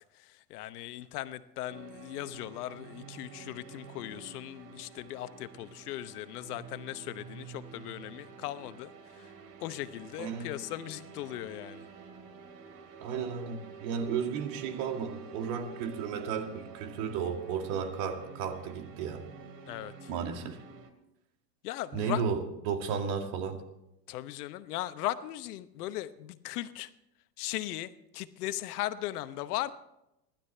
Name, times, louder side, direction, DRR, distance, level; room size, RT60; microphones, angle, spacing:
voice 1, 0.1-9.3 9.6-11.8 19.7-20.1 21.6-22.2 24.1-26.9 27.4-29.7, left 14 dB, 65° left, 13 dB, 1.0 m, -38 dB
sound 1, 1.7-20.9, right 5 dB, 40° right, 2.6 m, -49 dB
voice 2, 10.2-10.5 13.0-19.2 20.1-20.6 21.9-23.6, right 6 dB, 60° right, 5 dB, 2.4 m, -34 dB
25.5 x 12.0 x 3.4 m, 0.87 s
hypercardioid pair, 100°, 49 cm